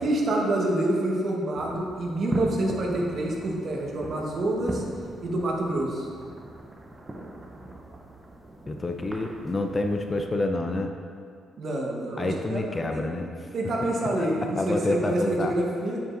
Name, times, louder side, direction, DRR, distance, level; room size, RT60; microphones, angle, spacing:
voice 1, 0.0-4.8 5.2-6.1 11.6-13.0 13.5-16.0, right 1 dB, 55° right, -1 dB, 1.2 m, -27 dB
sound 1, 1.6-10.3, right 1 dB, 25° right, 0.7 m, -38 dB
voice 2, 8.7-10.9 12.2-13.3 14.2-15.5, left 2 dB, 25° left, 4 dB, 0.5 m, -28 dB
9.0 x 5.2 x 2.5 m, 2.2 s
cardioid pair, 90°, 0 cm